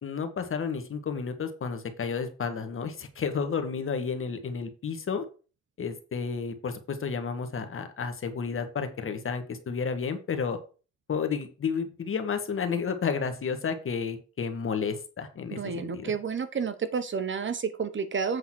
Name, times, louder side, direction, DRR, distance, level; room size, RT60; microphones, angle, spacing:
voice 1, 0.0-5.2 5.8-10.6 11.1-16.1, left 6 dB, 45° left, 7 dB, 1.5 m, -31 dB
voice 2, 15.5-18.4, right 6 dB, 40° right, 11 dB, 1.0 m, -30 dB
8.0 x 3.9 x 6.1 m, 0.35 s
cardioid pair, 90°, 30 cm